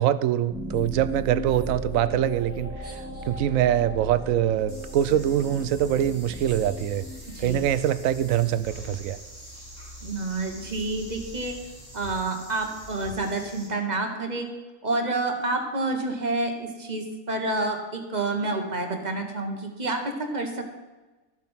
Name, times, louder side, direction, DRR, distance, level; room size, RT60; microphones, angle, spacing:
voice 1, 0.0-7.1 7.4-9.2, right 11 dB, 75° right, 15 dB, 1.0 m, -24 dB
sound 1, 0.5-12.1, equal, 10° right, 1.7 m, -38 dB
sound 2, 4.7-13.7, equal, 30° left, 3.2 m, -45 dB
voice 2, 10.0-11.5 11.9-14.5 14.8-20.6, right 2 dB, 30° right, 4 dB, 1.4 m, -29 dB
12.5 x 7.4 x 5.7 m, 1.2 s
omnidirectional pair, 1.4 m